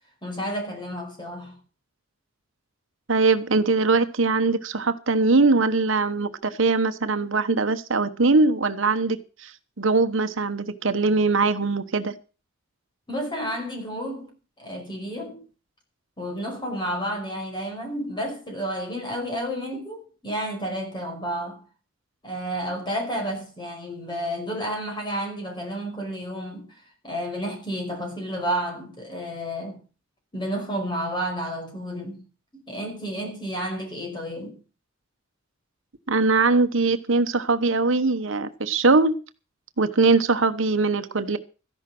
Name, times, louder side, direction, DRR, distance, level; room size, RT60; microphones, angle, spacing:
voice 1, 0.2-1.6 13.1-15.4 16.2-21.6 22.2-26.8 27.0-29.8 30.3-32.2 32.5-34.6, equal, 25° left, 5.4 m, -31 dB
voice 2, 3.1-12.1 36.1-39.1 39.8-41.4, right 3 dB, 65° right, 1.1 m, -21 dB
14.0 x 11.0 x 6.1 m
head